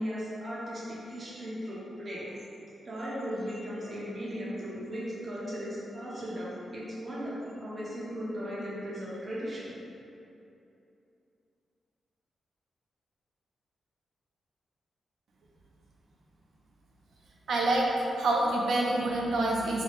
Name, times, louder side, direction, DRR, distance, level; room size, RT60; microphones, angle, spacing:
voice 1, 0.0-2.3 2.8-9.7, equal, 30° right, -7 dB, 0.8 m, -37 dB
voice 2, 17.5-19.8, right 2 dB, 70° right, -3 dB, 0.5 m, -27 dB
3.9 x 2.1 x 3.5 m, 2.8 s
wide cardioid pair, 160°, 0 cm